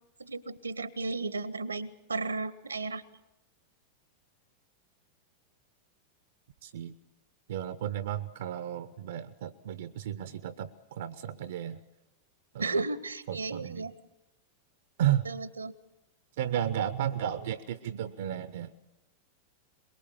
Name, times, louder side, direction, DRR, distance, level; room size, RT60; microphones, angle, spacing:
voice 1, 0.2-3.0 12.6-13.9 15.3-15.7, right 3 dB, 75° right, 18 dB, 1.0 m, -34 dB
voice 2, 6.6-6.9 7.5-11.8 12.5-12.8 13.3-13.9 15.0-15.3 16.4-18.7, right 11 dB, 60° right, 14 dB, 0.7 m, -33 dB
23.0 x 21.5 x 6.8 m, 0.99 s
figure-of-eight pair, 90°, 0 cm